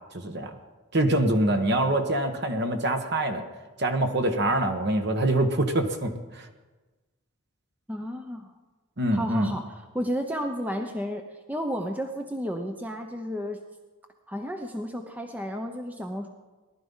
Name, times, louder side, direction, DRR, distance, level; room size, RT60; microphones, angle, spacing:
voice 1, 0.1-0.5 0.9-3.4 3.8-6.5 9.0-9.5, right 1 dB, 50° right, 6 dB, 1.5 m, -25 dB
voice 2, 7.9-8.5 9.1-13.6 14.3-16.3, equal, 5° right, 4 dB, 0.8 m, -32 dB
19.0 x 12.0 x 5.6 m, 1.2 s
head